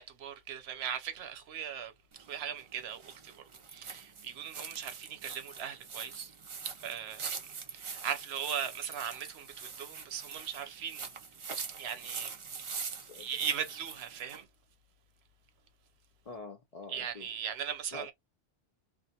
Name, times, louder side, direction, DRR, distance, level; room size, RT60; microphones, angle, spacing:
voice 1, 0.0-3.3 3.7-6.3 6.6-7.3 7.7-11.1 11.8-12.9 13.2-14.5 16.9-18.1, right 8 dB, 80° right, 0.9 m, -39 dB
sound 1, 2.1-14.4, right 5 dB, 45° right, 0.4 m, -43 dB
voice 2, 13.0-13.5 16.2-17.3 17.9-18.1, left 4 dB, 55° left, 0.4 m, -46 dB
2.4 x 2.2 x 2.7 m
omnidirectional pair, 1.1 m